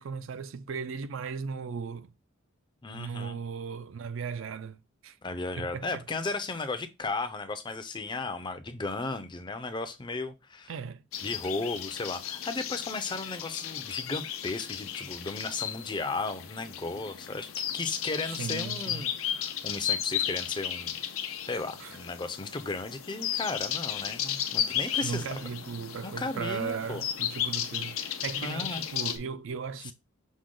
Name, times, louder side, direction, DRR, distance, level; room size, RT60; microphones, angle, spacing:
voice 1, 0.0-2.1 2.9-5.2 5.6-6.0 10.7-11.0 18.3-19.1 21.8-22.0 25.0-29.9, right 5 dB, 70° right, 0.4 m, -37 dB
voice 2, 2.8-3.4 5.2-10.7 11.2-21.0 21.5-25.4 26.0-27.0 28.4-28.8 29.8-29.9, left 3 dB, 20° left, 0.5 m, -35 dB
sound 1, 11.1-29.2, left 9 dB, 85° left, 0.6 m, -34 dB
6.2 x 2.2 x 3.7 m
head